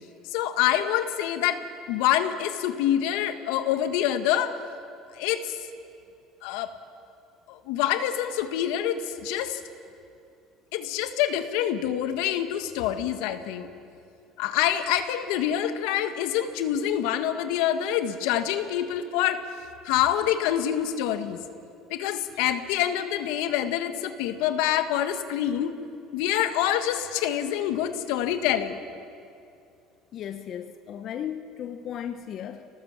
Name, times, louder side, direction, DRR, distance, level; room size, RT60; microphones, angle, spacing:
voice 1, 0.3-1.6 1.9-4.6 5.1-5.6 6.4-6.7 7.5-9.6 10.7-13.7 14.4-19.4 19.8-21.4 21.9-25.7 26.1-28.8, left 11 dB, 80° left, 9 dB, 1.5 m, -26 dB
voice 2, 30.1-32.7, left 9 dB, 55° left, 8 dB, 1.0 m, -35 dB
26.0 x 19.0 x 7.5 m, 2.5 s
supercardioid pair, 90°, 0 cm